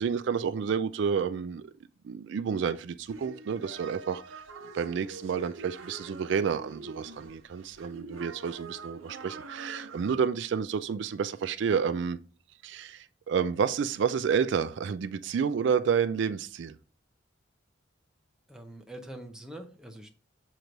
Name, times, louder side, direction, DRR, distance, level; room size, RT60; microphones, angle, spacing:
voice 1, 0.0-1.7 2.0-4.4 4.7-12.2 12.6-16.8, right 6 dB, 65° right, 0.3 m, -30 dB
sound 1, 3.1-10.1, right 3 dB, 85° right, 0.7 m, -45 dB
voice 2, 18.5-20.1, right 1 dB, 5° right, 0.6 m, -44 dB
6.5 x 3.1 x 5.1 m
head